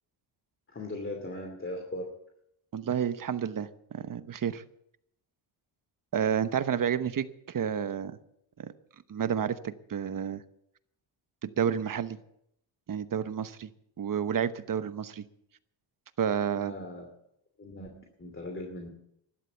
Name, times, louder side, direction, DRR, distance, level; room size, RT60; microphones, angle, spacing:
voice 1, 0.7-2.1 16.6-17.1 17.6-18.9, left 1 dB, 25° left, 3 dB, 2.6 m, -39 dB
voice 2, 2.7-3.7 3.9-4.6 6.1-8.2 8.6-8.7 9.1-10.4 11.4-12.2 12.9-13.7 14.0-15.2 16.2-16.7, right 8 dB, 45° right, 13 dB, 1.0 m, -30 dB
12.5 x 12.0 x 7.0 m, 0.76 s
cardioid pair, 85°, 47 cm